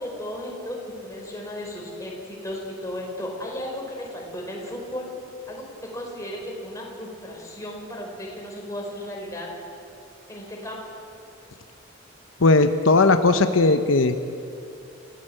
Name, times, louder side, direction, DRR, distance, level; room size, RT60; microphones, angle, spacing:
voice 1, 0.0-5.1 5.5-9.5 10.3-10.8, left 1 dB, 15° left, -1 dB, 4.9 m, -35 dB
voice 2, 12.4-14.2, left 3 dB, 80° left, 8 dB, 0.9 m, -17 dB
28.5 x 15.5 x 7.9 m, 2.6 s
head